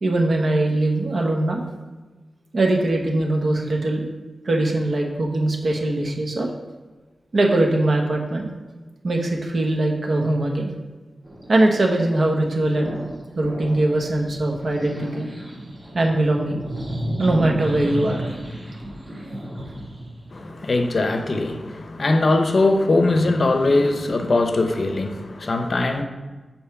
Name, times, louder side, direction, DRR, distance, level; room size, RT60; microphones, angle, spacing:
voice 1, 0.0-1.6 2.5-4.1 4.4-6.5 7.3-8.5 9.0-10.7 11.5-12.9 13.4-15.3 15.9-16.6 17.2-18.2, right 2 dB, 60° right, 1 dB, 1.0 m, -21 dB
sound 1, 11.2-12.2 12.5-13.1 13.4-20.7, right 1 dB, 40° right, 1.7 m, -33 dB
voice 2, 20.3-26.0, left 2 dB, 50° left, 6 dB, 0.6 m, -21 dB
5.6 x 4.3 x 5.8 m, 1.2 s
wide cardioid pair, 130°, 0 cm